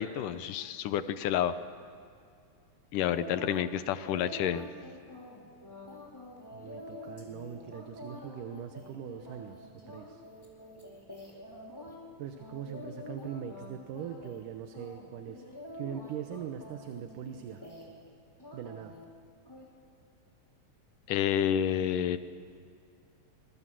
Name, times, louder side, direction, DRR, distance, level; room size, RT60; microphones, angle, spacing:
voice 1, 0.0-1.5 2.9-4.7 21.1-22.2, left 10 dB, 75° left, 12 dB, 2.3 m, -29 dB
sound 1, 3.0-3.7 4.0-12.0 12.4-13.7 14.0-14.4 14.7-18.1 18.4-19.0 19.5-19.6, left 1 dB, 5° left, 4.2 m, -47 dB
voice 2, 6.5-10.2 12.2-15.5 15.7-17.7 18.5-19.0, right 9 dB, 75° right, 7 dB, 2.5 m, -41 dB
25.5 x 22.5 x 7.6 m, 2.4 s
omnidirectional pair, 3.9 m